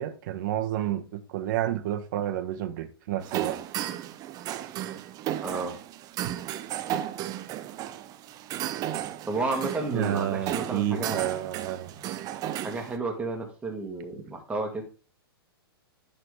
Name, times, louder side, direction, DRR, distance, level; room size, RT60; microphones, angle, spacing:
voice 1, 0.0-3.6 9.9-11.9, right 12 dB, 50° right, 1.3 m, -30 dB
sound 1, 3.2-13.0, right 12 dB, 30° right, 0.6 m, -34 dB
voice 2, 5.4-5.8 9.2-11.3 12.6-14.8, right 3 dB, 10° right, 1.9 m, -32 dB
11.0 x 4.1 x 3.5 m
hypercardioid pair, 110°, 13 cm